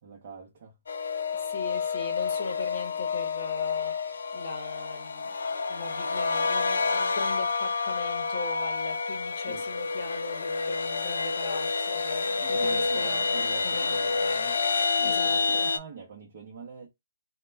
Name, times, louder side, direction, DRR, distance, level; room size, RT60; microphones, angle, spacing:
voice 1, 0.0-0.8 9.5-9.7 12.4-14.6 15.0-16.9, right 5 dB, 35° right, 0.7 m, -44 dB
sound 1, 0.9-15.8, left 4 dB, 75° left, 0.4 m, -28 dB
voice 2, 1.4-3.9 4.3-5.4 5.7-13.9 15.0-15.7, left 4 dB, 35° left, 0.8 m, -39 dB
2.3 x 2.1 x 3.2 m
hypercardioid pair, 170°, 0 cm